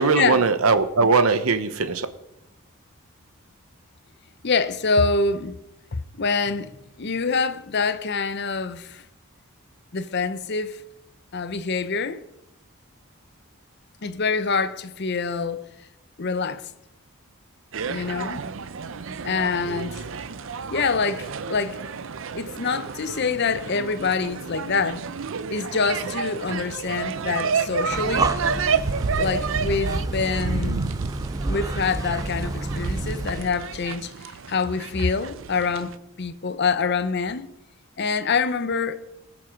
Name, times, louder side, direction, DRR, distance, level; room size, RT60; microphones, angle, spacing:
voice 1, 0.0-2.1, right 4 dB, 80° right, 0.9 m, -20 dB
voice 2, 4.4-5.5 5.9-9.0 9.9-10.8 11.3-12.2 14.0-15.6 16.2-16.7 17.9-18.5 19.2-20.0 20.7-21.8 22.3-25.1 25.5-28.3 29.2-30.8 31.5-37.5 38.0-39.0, left 4 dB, 50° left, 0.7 m, -26 dB
sound 1, 17.7-36.0, right 5 dB, 60° right, 0.6 m, -30 dB
Breathing, 27.8-33.6, right 2 dB, 15° right, 0.4 m, -30 dB
20.0 x 7.0 x 5.1 m
head